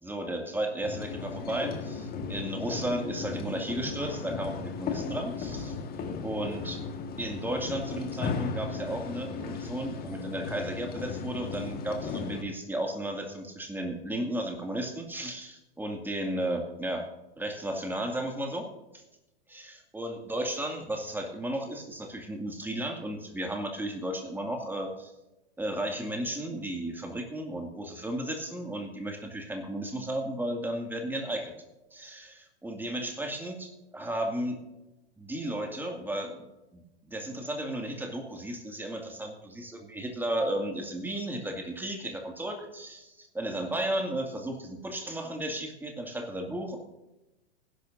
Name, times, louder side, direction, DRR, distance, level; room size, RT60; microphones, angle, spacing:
voice 1, 0.0-5.7 6.2-6.8 7.2-17.1 17.4-19.0 19.5-25.1 25.6-31.5 31.9-34.6 35.2-36.5 36.7-46.8, right 1 dB, 5° right, 3 dB, 2.2 m, -34 dB
sound 1, 0.8-12.4, left 5 dB, 30° left, 1.6 m, -36 dB
19.0 x 11.5 x 2.6 m, 0.97 s
hypercardioid pair, 110°, 33 cm